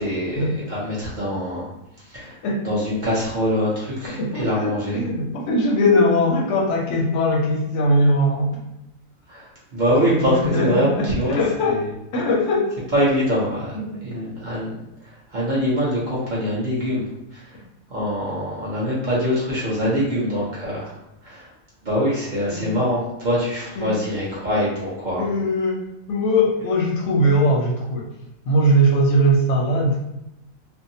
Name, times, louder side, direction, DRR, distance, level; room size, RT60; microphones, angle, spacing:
voice 1, 0.0-1.7 2.0-5.0 9.3-11.4 11.6-11.8 12.9-17.0 17.3-17.6 17.9-21.5 21.8-25.2, equal, 45° right, -6 dB, 0.7 m, -24 dB
voice 2, 4.2-8.5 10.3-11.8 12.1-12.7 13.8-14.0 22.5-22.7 23.8-23.9 25.2-25.8 26.1-28.1 28.5-30.0, equal, 65° left, -2 dB, 0.8 m, -20 dB
2.6 x 2.0 x 2.6 m, 0.88 s
omnidirectional pair, 1.5 m